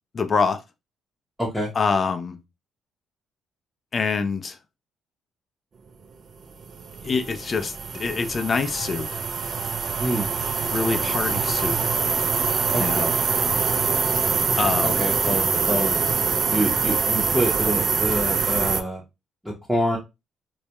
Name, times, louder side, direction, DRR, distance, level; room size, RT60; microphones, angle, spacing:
voice 1, 0.1-0.6 1.8-2.4 3.9-4.6 7.0-9.2 10.7-11.8 12.8-13.1 14.6-15.0, left 4 dB, 40° left, 0.4 m, -25 dB
voice 2, 1.4-1.7 10.0-10.3 12.7-13.1 15.0-16.0 16.5-19.0 19.4-20.0, equal, ahead, 0.6 m, -26 dB
sound 1, 6.6-18.8, right 5 dB, 50° right, 0.3 m, -24 dB
2.2 x 2.0 x 2.8 m
cardioid pair, 95°, 0 cm